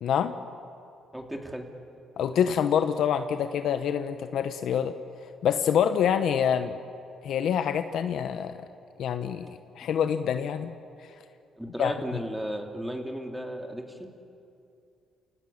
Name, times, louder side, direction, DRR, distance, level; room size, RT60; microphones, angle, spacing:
voice 1, 0.0-0.4 2.2-4.9 5.4-6.8 7.2-8.6 9.0-9.5 9.7-10.7 11.8-11.9, left 8 dB, 75° left, 9 dB, 1.0 m, -26 dB
voice 2, 1.1-1.7 11.6-14.1, equal, 5° right, 2 dB, 3.0 m, -34 dB
28.5 x 18.0 x 8.7 m, 2.6 s
cardioid pair, 90°, 0 cm